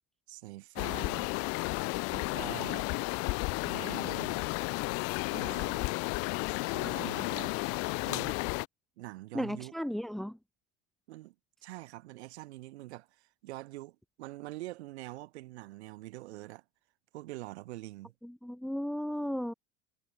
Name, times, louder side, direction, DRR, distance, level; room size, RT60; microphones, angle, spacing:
voice 1, 0.3-1.3 2.1-2.9 3.6-4.4 5.3-5.9 6.6-7.5 8.0-8.4 9.0-9.7 11.1-11.3 11.6-16.6 17.1-18.1, right 18 dB, 85° right, 6.1 m, -45 dB
sound 1, 0.8-8.7, left 27 dB, 45° left, 1.5 m, -33 dB
voice 2, 9.3-10.4 18.2-19.5, equal, ahead, 1.2 m, -35 dB
supercardioid pair, 165°, 32 cm